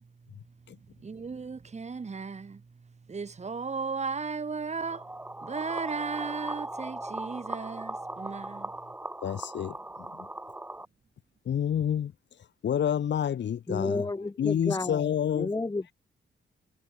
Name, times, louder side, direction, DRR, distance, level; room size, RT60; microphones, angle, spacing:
voice 1, 0.0-8.9, right 5 dB, 35° right, 7.2 m, -36 dB
sound 1, 4.8-10.9, right 1 dB, 10° right, 1.2 m, -39 dB
voice 2, 9.2-10.3 11.5-12.1 12.6-14.1 14.4-15.5, left 9 dB, 70° left, 2.0 m, -29 dB
voice 3, 13.7-15.9, left 3 dB, 20° left, 1.9 m, -32 dB
wide cardioid pair, 120°, 19 cm